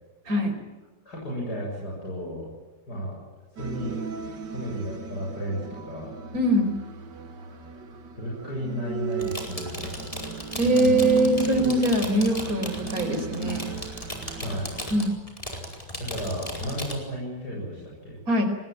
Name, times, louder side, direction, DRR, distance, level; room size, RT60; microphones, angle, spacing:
voice 1, 1.0-2.5 2.9-3.2 3.6-4.0 4.5-6.1 8.2-10.3 10.8-11.0 11.4-11.6 14.4-14.7 16.0-18.2, equal, 70° left, -4 dB, 8.4 m, -33 dB
sound 1, 3.6-15.1, right 7 dB, 80° right, 2.5 m, -35 dB
voice 2, 6.3-6.8 10.6-13.6 14.9-15.1 18.3-18.4, right 1 dB, 55° right, 5 dB, 5.0 m, -22 dB
sound 2, 9.1-16.9, left 1 dB, 20° left, 4.8 m, -36 dB
25.5 x 20.0 x 9.1 m, 1.1 s
omnidirectional pair, 1.8 m